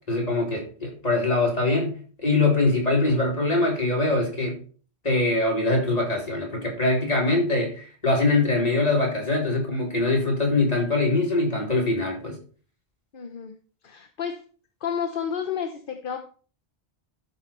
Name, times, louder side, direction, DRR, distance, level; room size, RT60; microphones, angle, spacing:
voice 1, 0.1-4.6 5.0-12.4, left 2 dB, 35° left, -1 dB, 3.2 m, -23 dB
voice 2, 13.1-13.5 13.8-14.4 14.8-16.2, left 7 dB, 55° left, 5 dB, 1.1 m, -30 dB
13.0 x 5.4 x 4.4 m, 0.40 s
omnidirectional pair, 1.1 m